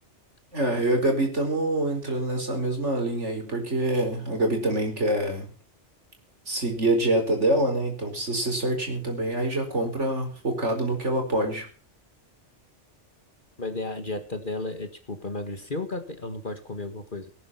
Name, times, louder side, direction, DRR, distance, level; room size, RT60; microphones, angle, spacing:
voice 1, 0.5-5.5 6.5-11.7, right 1 dB, 70° right, 3 dB, 5.2 m, -25 dB
voice 2, 13.6-17.3, left 2 dB, 45° left, 8 dB, 1.9 m, -33 dB
18.5 x 10.5 x 5.7 m, 0.38 s
omnidirectional pair, 1.2 m